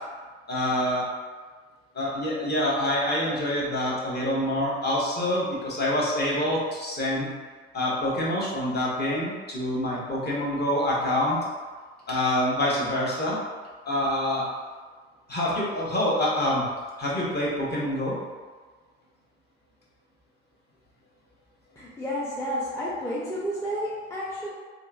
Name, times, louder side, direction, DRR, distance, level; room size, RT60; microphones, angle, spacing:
voice 1, 0.5-1.1 1.9-7.3 7.7-11.4 12.1-13.4 13.9-14.4 15.3-16.7 17.0-18.1, left 1 dB, 30° left, -5 dB, 0.9 m, -26 dB
voice 2, 21.8-24.5, equal, 10° left, -7 dB, 0.5 m, -31 dB
2.8 x 2.4 x 2.3 m, 1.4 s
hypercardioid pair, 65°, 32 cm